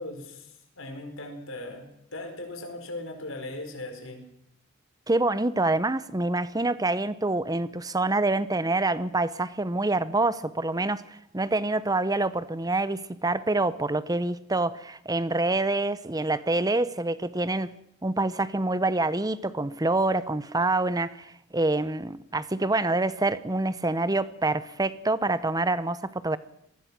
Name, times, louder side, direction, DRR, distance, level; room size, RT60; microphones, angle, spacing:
voice 1, 0.0-1.9 2.1-4.2, left 2 dB, 85° left, 6 dB, 4.8 m, -38 dB
voice 2, 5.1-17.7 18.0-26.4, right 2 dB, 20° right, 15 dB, 1.0 m, -26 dB
26.0 x 19.5 x 6.3 m, 0.77 s
head